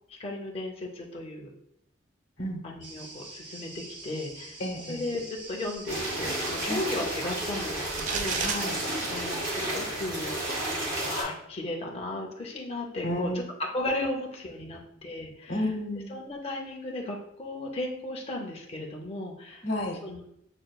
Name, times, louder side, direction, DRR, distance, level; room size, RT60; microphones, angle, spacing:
voice 1, 0.1-1.5 2.6-4.6 4.9-8.4 9.1-10.3 11.1-13.3 13.7-15.6 16.1-19.6 20.0-20.3, left 2 dB, 30° left, 0 dB, 0.5 m, -35 dB
sound 1, 2.8-9.2, right 2 dB, 65° right, 0.7 m, -45 dB
voice 2, 4.6-5.0 6.7-6.8 8.4-8.8 13.0-13.4 15.5-16.1 19.6-20.0, left 1 dB, 90° left, 2 dB, 0.8 m, -31 dB
sound 2, 5.9-11.2, right 1 dB, 90° right, 1.4 m, -32 dB
sound 3, 7.9-8.6, right 5 dB, 40° right, 0.3 m, -30 dB
6.3 x 2.2 x 2.2 m, 0.76 s
head